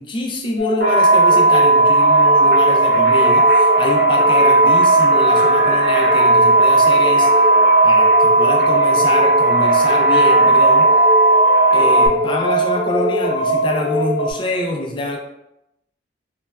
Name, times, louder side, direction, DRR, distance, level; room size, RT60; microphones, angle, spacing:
voice 1, 0.0-7.3 7.8-10.9 11.7-15.2, left 1 dB, 30° left, 1 dB, 0.3 m, -25 dB
sound 1, 0.6-14.3, equal, 75° left, 0.6 m, -20 dB
sound 2, 0.8-12.1, right 2 dB, 75° right, 0.5 m, -14 dB
3.1 x 2.2 x 2.2 m, 0.86 s
head